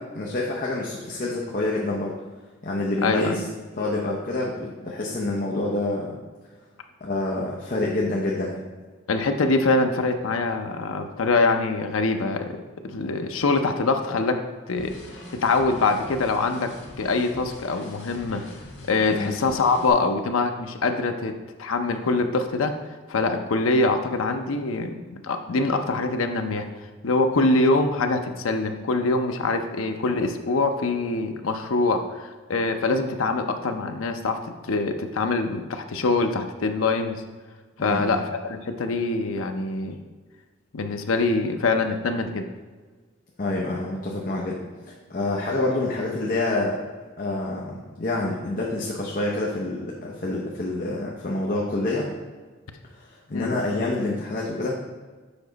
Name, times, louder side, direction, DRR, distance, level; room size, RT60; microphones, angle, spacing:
voice 1, 0.1-2.2 2.6-3.4 3.8-6.2 7.0-8.6 19.1-19.3 37.8-38.2 43.4-46.8 47.2-52.1 52.9-54.7, left 2 dB, 45° left, -3 dB, 0.7 m, -27 dB
voice 2, 3.0-3.4 9.1-12.6 12.9-14.4 14.7-15.0 15.3-16.7 17.0-18.4 18.9-21.3 21.6-22.7 23.1-26.7 27.0-37.2 37.8-40.0 40.7-42.5 53.3-53.5, left 3 dB, 90° left, 6 dB, 0.6 m, -24 dB
sound 1, 14.8-19.9, left 1 dB, 75° left, 1.5 m, -43 dB
7.0 x 4.9 x 4.0 m, 1.4 s
head